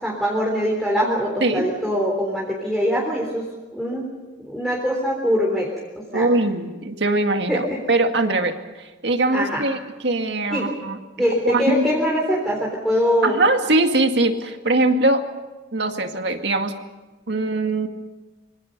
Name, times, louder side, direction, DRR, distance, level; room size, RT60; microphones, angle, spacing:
voice 1, 0.0-3.5 3.7-4.1 4.4-5.7 6.0-6.3 7.5-7.8 9.3-9.6 10.5-10.7 11.2-13.4, equal, ahead, -3 dB, 3.8 m, -23 dB
voice 2, 6.1-11.0 11.4-11.9 13.2-15.2 15.7-16.7 17.3-17.9, right 2 dB, 60° right, 5 dB, 2.1 m, -21 dB
26.0 x 24.0 x 5.4 m, 1.2 s
head